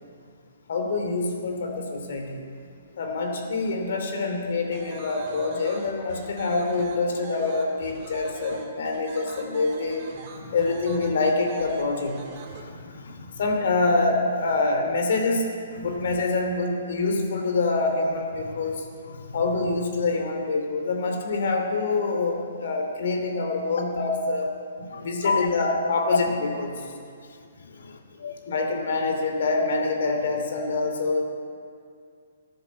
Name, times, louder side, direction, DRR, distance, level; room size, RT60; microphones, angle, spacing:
voice 1, 0.7-2.4 3.0-10.0 10.5-12.2 13.4-15.4 15.7-18.8 19.3-24.5 24.8-26.8 28.4-31.2, left 3 dB, 60° left, 3 dB, 3.0 m, -26 dB
sound 1, 4.7-12.6, right 5 dB, 35° right, 2.2 m, -43 dB
voice 2, 12.5-13.3 15.8-15.9 19.1-19.4 24.9-25.5 26.1-26.2 27.7-28.3, left 5 dB, 75° left, 4 dB, 1.8 m, -30 dB
14.0 x 10.0 x 7.2 m, 2.3 s
hypercardioid pair, 160°, 0 cm